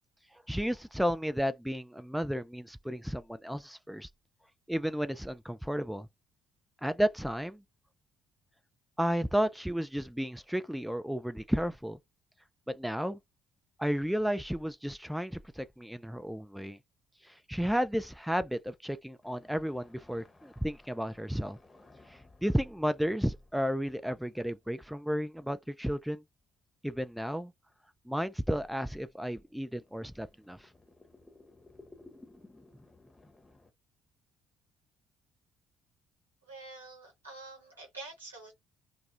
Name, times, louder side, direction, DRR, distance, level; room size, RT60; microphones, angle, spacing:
voice 1, 0.5-4.1 4.7-6.1 6.8-7.6 9.0-12.0 12.7-13.2 13.8-16.8 17.2-21.6 22.1-26.2 26.8-27.5 28.1-30.7, equal, 5° right, 0.3 m, -33 dB
sound 1, 19.2-25.1 25.6-25.7 26.4-26.5 28.2-33.7, left 2 dB, 15° left, 0.8 m, -59 dB
voice 2, 36.4-38.5, right 3 dB, 90° right, 1.1 m, -47 dB
2.3 x 2.0 x 2.9 m
figure-of-eight pair, 50°, 0 cm